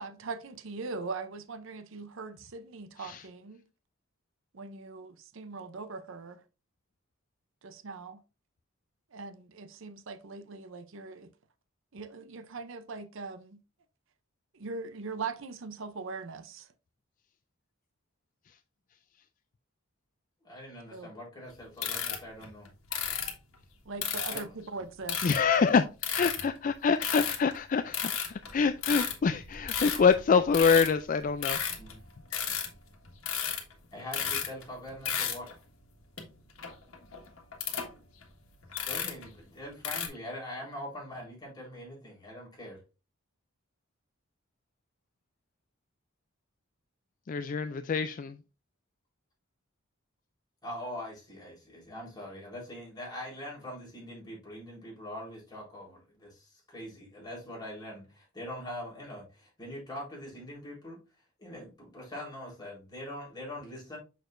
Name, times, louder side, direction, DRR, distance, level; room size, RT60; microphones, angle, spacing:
voice 1, 0.0-3.6 4.5-6.4 7.6-8.2 9.1-11.3 11.9-13.6 14.5-16.7 20.9-21.1 23.9-25.3, right 4 dB, 65° right, 0.6 m, -41 dB
voice 2, 20.4-22.7 24.3-24.5 31.8-32.0 33.9-35.5 38.8-42.8 50.6-61.0 61.4-64.0, left 1 dB, 20° left, 3.8 m, -43 dB
sound 1, 21.8-23.3 24.0-24.4 25.1-25.6 26.0-26.7 27.0-27.6 27.9-31.0 31.3-32.0 32.3-32.7 33.1-33.7 34.0-34.6 34.9-35.5 36.2-36.3 36.6-37.9 38.2-38.3 38.6-39.3 39.8-40.1, left 8 dB, 80° left, 1.6 m, -33 dB
voice 3, 25.2-25.9 26.1-31.6 47.3-48.4, left 5 dB, 40° left, 0.3 m, -26 dB
6.7 x 6.2 x 2.5 m
head